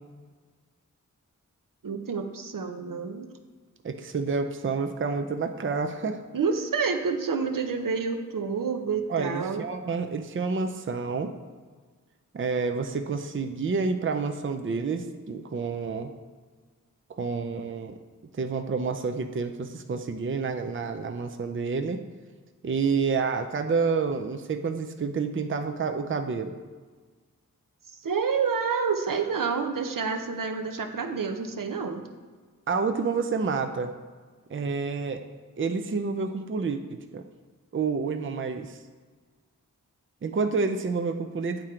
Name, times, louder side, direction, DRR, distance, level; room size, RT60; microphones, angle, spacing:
voice 1, 1.8-3.3 6.3-9.6 28.0-32.0, right 5 dB, 75° right, 5 dB, 0.7 m, -28 dB
voice 2, 3.8-6.2 9.1-11.3 12.3-16.1 17.1-18.0 18.3-22.0 22.6-26.6 32.7-33.9 34.5-35.2 35.6-37.2 37.7-38.8 40.2-41.6, right 4 dB, 40° right, 7 dB, 0.5 m, -29 dB
9.0 x 3.7 x 4.4 m, 1.5 s
wide cardioid pair, 65°, 33 cm